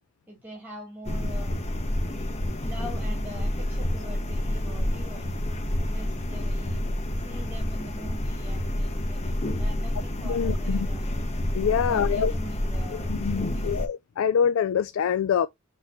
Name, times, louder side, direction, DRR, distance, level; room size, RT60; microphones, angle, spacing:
voice 1, 0.3-1.5 2.6-5.5 5.9-6.8 7.2-11.1 11.7-13.9, equal, 10° right, 2.1 m, -43 dB
sound 1, 1.1-13.9, left 1 dB, 35° left, 1.0 m, -29 dB
voice 2, 10.2-10.9 11.5-12.3 12.9-15.5, left 7 dB, 75° left, 0.3 m, -25 dB
6.5 x 3.1 x 2.6 m
head